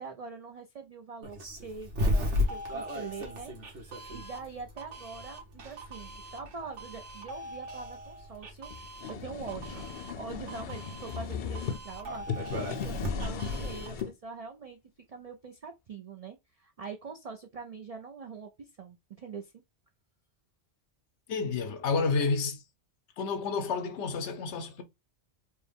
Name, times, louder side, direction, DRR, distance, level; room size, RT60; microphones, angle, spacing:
voice 1, 0.0-14.8 15.1-19.5, right 5 dB, 45° right, 0.5 m, -44 dB
Doorbell, 1.2-14.0, left 1 dB, 85° right, 1.5 m, -36 dB
sound 1, 8.7-11.8 12.2-14.1, left 7 dB, 55° left, 0.6 m, -37 dB
voice 2, 21.3-22.6 23.2-24.8, left 4 dB, 80° left, 1.0 m, -30 dB
4.4 x 2.2 x 3.4 m
omnidirectional pair, 1.2 m